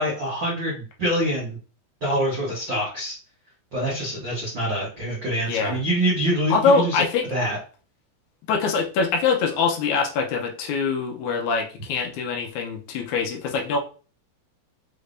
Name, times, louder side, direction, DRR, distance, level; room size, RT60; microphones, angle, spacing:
voice 1, 0.0-1.6 2.0-3.1 3.7-7.0 7.3-7.6, equal, 75° right, -6 dB, 1.0 m, -25 dB
voice 2, 5.5-5.8 6.5-7.3 8.5-13.8, left 5 dB, 75° left, 2 dB, 1.8 m, -23 dB
5.5 x 3.4 x 2.6 m, 0.37 s
omnidirectional pair, 4.3 m